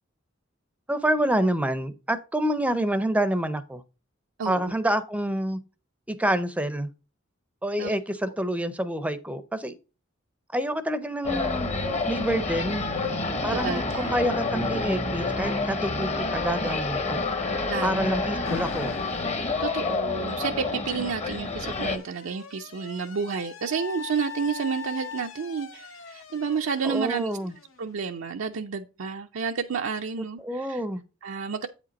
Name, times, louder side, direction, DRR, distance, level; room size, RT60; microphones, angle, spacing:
voice 1, 0.9-3.8 4.5-5.6 6.1-6.9 7.6-9.8 10.5-11.7 12.1-12.8 13.4-17.2 17.8-19.0 26.8-27.5 30.4-31.0, right 1 dB, 5° right, 0.5 m, -27 dB
voice 2, 4.4-4.7 7.8-7.9 13.5-14.1 17.7-18.1 19.6-27.3 27.8-30.8 31.2-31.7, right 6 dB, 75° right, 0.5 m, -30 dB
sound 1, 11.2-22.0, left 3 dB, 35° left, 0.9 m, -28 dB
Alarm, 18.4-19.4 20.6-28.3, left 6 dB, 70° left, 0.8 m, -41 dB
8.3 x 5.1 x 4.1 m
head